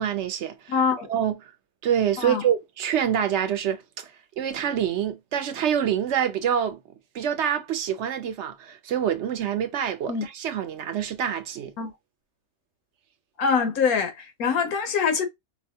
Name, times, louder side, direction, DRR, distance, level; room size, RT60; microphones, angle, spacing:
voice 1, 0.0-0.7 1.1-1.4 1.8-4.1 4.4-6.8 7.1-11.7, right 9 dB, 60° right, 0.8 m, -26 dB
voice 2, 0.7-1.1 2.2-2.4 10.1-10.3 11.8-11.9 13.4-15.2, left 6 dB, 90° left, 1.4 m, -24 dB
4.6 x 2.2 x 2.8 m
omnidirectional pair, 1.5 m